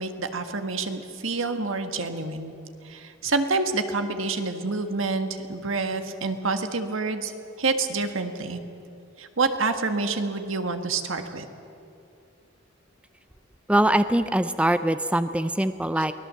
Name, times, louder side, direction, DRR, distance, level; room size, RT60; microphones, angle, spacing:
voice 1, 0.0-2.5 2.8-7.3 7.6-8.6 9.2-11.4, right 3 dB, 80° right, 7 dB, 1.7 m, -27 dB
voice 2, 13.7-16.1, right 1 dB, 5° right, 11 dB, 0.5 m, -22 dB
23.5 x 18.0 x 7.6 m, 2.7 s
head